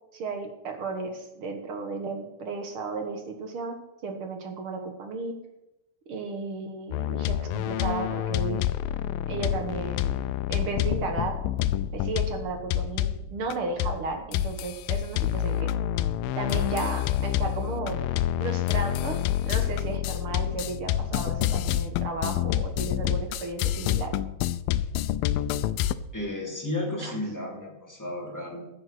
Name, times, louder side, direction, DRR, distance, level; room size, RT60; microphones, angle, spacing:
voice 1, 0.1-5.4 6.1-8.6 9.3-10.2 10.5-11.4 11.9-15.7 16.3-18.0 18.4-24.1 27.0-27.2, right 4 dB, 55° right, 5 dB, 1.6 m, -34 dB
sound 1, 6.9-13.5 13.8-14.1 14.3-25.9, left 12 dB, 85° left, 2.3 m, -27 dB
voice 2, 26.1-28.6, left 1 dB, 5° left, -2 dB, 2.9 m, -33 dB
15.0 x 7.9 x 6.0 m, 0.94 s
omnidirectional pair, 4.1 m